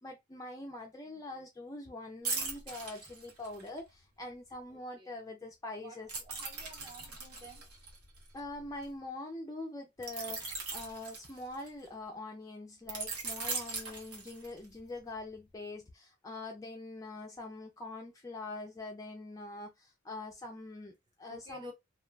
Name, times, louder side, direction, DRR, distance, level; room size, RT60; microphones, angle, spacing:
voice 1, 0.0-6.2 8.3-21.7, left 2 dB, 15° left, 0.4 m, -44 dB
sound 1, 2.2-3.8 6.1-8.8 10.0-11.9 12.9-14.7 15.2-15.4, right 4 dB, 85° right, 1.0 m, -39 dB
voice 2, 6.2-7.7 21.3-21.7, equal, 20° right, 0.7 m, -50 dB
2.3 x 2.1 x 3.2 m
head